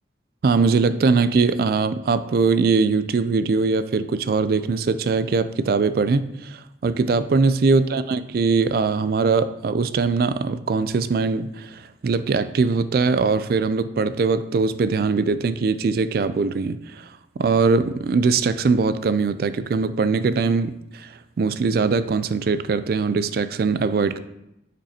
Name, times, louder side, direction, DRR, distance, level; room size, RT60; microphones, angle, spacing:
voice 1, 0.4-17.1 17.4-21.1 21.4-24.2, right 4 dB, 55° right, 13 dB, 0.3 m, -21 dB
8.7 x 5.2 x 2.8 m, 0.86 s
head